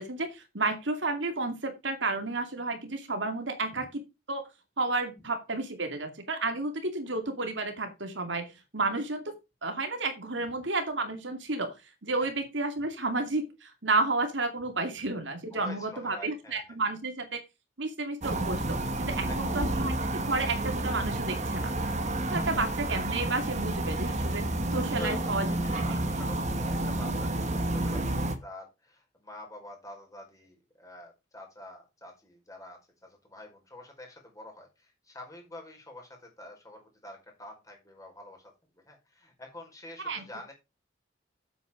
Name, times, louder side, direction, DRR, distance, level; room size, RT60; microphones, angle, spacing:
voice 1, 0.0-3.9 4.3-4.4 4.8-9.3 9.6-11.8 12.0-17.4 17.8-21.7 22.3-24.4 24.7-25.5 40.0-40.2, right 3 dB, 70° right, 6 dB, 2.4 m, -31 dB
voice 2, 15.5-16.6 19.2-19.7 22.2-22.3 24.9-40.5, left 1 dB, 15° left, 2 dB, 4.8 m, -47 dB
sound 1, 18.2-28.3, right 1 dB, 35° right, 1.6 m, -30 dB
8.8 x 8.1 x 5.0 m, 0.26 s
head